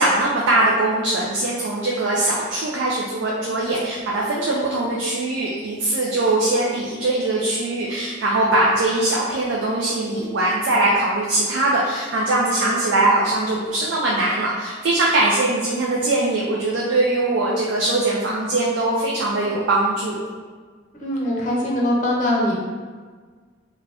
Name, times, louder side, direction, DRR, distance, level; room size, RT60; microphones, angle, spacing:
voice 1, 0.0-20.2, right 2 dB, 80° right, -4 dB, 0.4 m, -21 dB
voice 2, 21.0-22.5, left 1 dB, 40° left, -3 dB, 0.5 m, -21 dB
2.5 x 2.2 x 3.3 m, 1.5 s
head